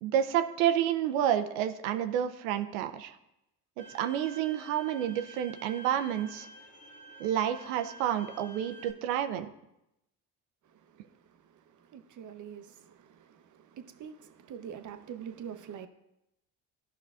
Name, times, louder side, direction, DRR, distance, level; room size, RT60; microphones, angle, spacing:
voice 1, 0.0-3.1 3.8-6.5 7.2-9.5, right 10 dB, 85° right, 0.6 m, -29 dB
Bowed string instrument, 3.8-8.9, right 3 dB, 20° left, 1.6 m, -49 dB
voice 2, 10.6-15.9, right 8 dB, 50° right, 0.8 m, -46 dB
13.5 x 5.6 x 2.4 m
hypercardioid pair, 65°, 40 cm